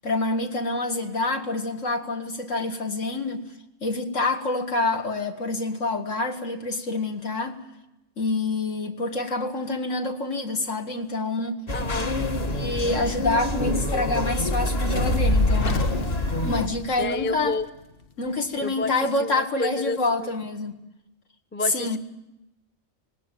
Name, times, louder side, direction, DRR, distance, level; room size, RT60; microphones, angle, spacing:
voice 1, 0.0-3.4 3.8-7.6 8.2-11.6 12.0-15.8 16.4-17.6 18.2-20.8 21.7-22.0, left 2 dB, 70° left, 4 dB, 2.2 m, -27 dB
sound 1, 11.7-16.7, left 1 dB, 30° left, 1.3 m, -27 dB
voice 2, 11.7-12.1 17.0-17.7 18.6-18.9 19.2-20.3 21.5-22.0, left 3 dB, 10° left, 10 dB, 0.5 m, -30 dB
Fire, 15.0-17.4, left 1 dB, 50° left, 1.1 m, -25 dB
19.5 x 18.5 x 9.1 m, 0.91 s
omnidirectional pair, 1.4 m